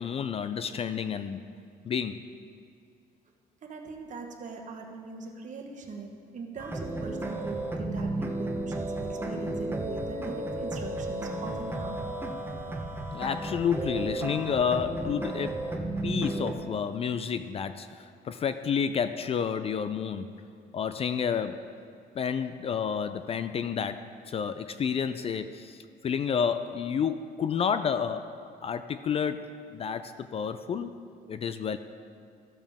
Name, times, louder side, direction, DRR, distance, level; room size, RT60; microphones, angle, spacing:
voice 1, 0.0-1.4 1.8-2.2 13.1-15.6 16.0-20.3 20.7-21.7 22.1-28.3 28.6-29.4 29.7-30.9 31.3-31.8, left 7 dB, 35° left, 11 dB, 0.4 m, -30 dB
voice 2, 3.6-12.0, right 4 dB, 45° right, 2 dB, 1.2 m, -41 dB
sound 1, 6.6-16.5, right 2 dB, 15° right, 0.9 m, -33 dB
13.5 x 7.2 x 3.5 m, 2.3 s
cardioid pair, 110°, 17 cm